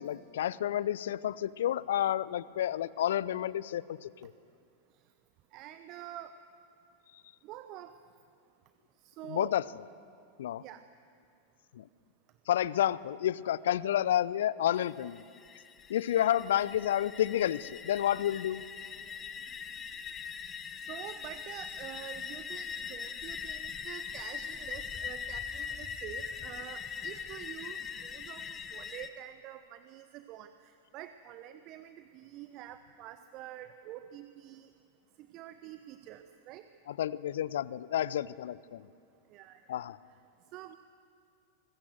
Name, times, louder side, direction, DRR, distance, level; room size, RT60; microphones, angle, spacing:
voice 1, 0.0-4.3 9.2-9.6 10.4-10.6 11.7-11.9 12.5-15.2 15.9-18.6 36.9-38.9 39.7-40.0, left 11 dB, 60° left, 20 dB, 0.6 m, -30 dB
voice 2, 5.5-6.3 7.4-7.9 9.0-9.6 10.6-10.8 20.9-34.7 35.2-36.7 39.3-39.9 40.5-40.8, right 12 dB, 40° right, 11 dB, 0.9 m, -47 dB
sound 1, 14.8-29.1, left 6 dB, 20° left, 1.3 m, -41 dB
25.0 x 20.5 x 7.6 m, 2.4 s
figure-of-eight pair, 90°, 0 cm